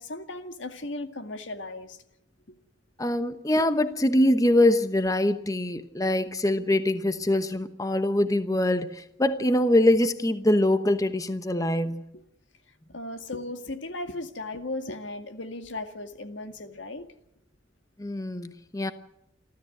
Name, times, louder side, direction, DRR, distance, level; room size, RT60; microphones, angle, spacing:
voice 1, 0.0-2.0 3.6-3.7 12.9-17.1, left 2 dB, 85° left, 7 dB, 2.1 m, -36 dB
voice 2, 3.0-12.0 18.0-18.9, left 1 dB, 20° left, 10 dB, 1.0 m, -23 dB
28.5 x 13.5 x 7.9 m, 0.81 s
head